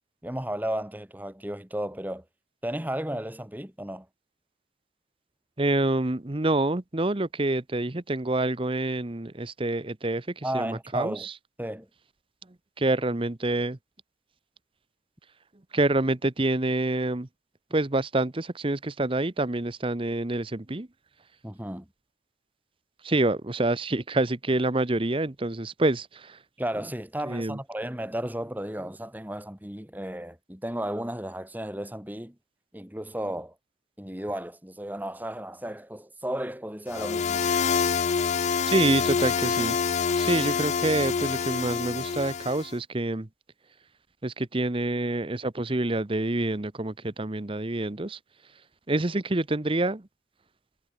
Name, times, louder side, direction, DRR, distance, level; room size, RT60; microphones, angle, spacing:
voice 1, 0.2-2.2 2.6-4.1 10.4-11.3 11.6-11.9 21.4-21.9 26.6-32.4 32.7-33.5 34.0-37.5, right 1 dB, 10° right, 2.4 m, -34 dB
voice 2, 5.6-11.3 12.8-13.8 15.7-17.3 17.7-20.9 23.0-26.4 27.3-27.6 38.7-39.8 40.2-43.3 44.2-48.2 48.9-50.1, right 2 dB, 30° right, 0.9 m, -27 dB
sound 1, 36.9-42.7, left 6 dB, 40° left, 0.3 m, -26 dB
head